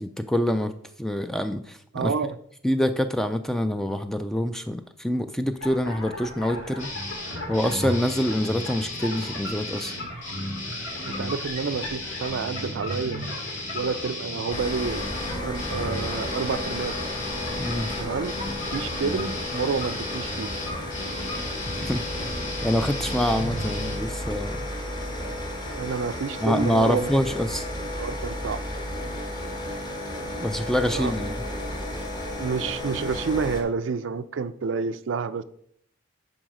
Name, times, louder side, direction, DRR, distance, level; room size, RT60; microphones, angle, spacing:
voice 1, 0.0-0.7 1.0-2.1 2.6-6.9 7.5-9.9 17.6-17.9 21.4-22.0 22.6-24.7 26.4-27.6 30.4-31.4, equal, ahead, 0.3 m, -26 dB
voice 2, 1.9-2.4 11.0-13.2 13.7-15.1 15.4-16.9 18.0-18.3 18.7-20.5 25.8-27.1 28.0-28.6 30.9-31.1 32.4-35.4, right 5 dB, 70° right, 0.4 m, -29 dB
sound 1, 5.6-21.4, left 2 dB, 75° left, 2.5 m, -40 dB
sound 2, 6.8-24.0, left 1 dB, 40° left, 2.1 m, -34 dB
sound 3, 14.5-33.6, left 1 dB, 20° left, 1.2 m, -33 dB
10.0 x 4.0 x 4.9 m
head